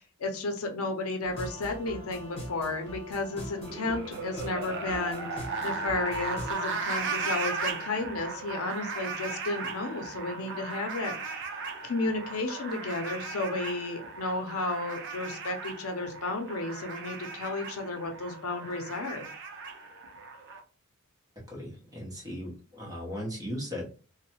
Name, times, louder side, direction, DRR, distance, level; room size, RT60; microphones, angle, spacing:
voice 1, 0.0-11.3 11.8-19.3, left 2 dB, 75° left, 4 dB, 0.6 m, -33 dB
sound 1, 1.2-6.5, equal, 25° left, 1.1 m, -41 dB
sound 2, 3.6-20.6, right 4 dB, 55° right, 0.6 m, -37 dB
voice 2, 21.5-23.9, equal, 15° right, -3 dB, 1.0 m, -37 dB
3.0 x 2.1 x 2.9 m, 0.36 s
head